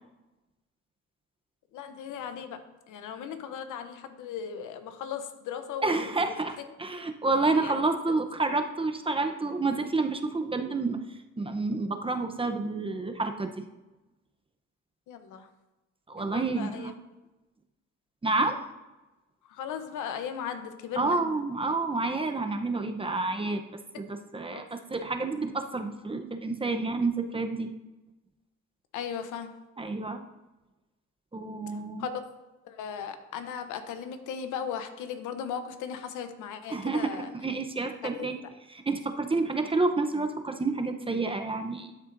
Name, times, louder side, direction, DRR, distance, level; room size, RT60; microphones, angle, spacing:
voice 1, 1.7-6.6 7.5-7.8 15.1-15.5 16.2-16.9 19.4-21.2 24.5-24.6 28.9-29.5 32.0-32.2 32.6-37.3 38.0-38.3, left 8 dB, 85° left, 8 dB, 0.9 m, -37 dB
voice 2, 5.8-6.5 6.8-11.0 11.4-13.5 16.1-16.9 18.2-18.6 21.0-23.6 24.0-27.7 29.8-30.2 31.3-32.1 36.7-38.3 38.7-41.9, right 3 dB, 20° right, 5 dB, 0.8 m, -29 dB
12.0 x 6.6 x 2.6 m, 1.1 s
cardioid pair, 90°, 30 cm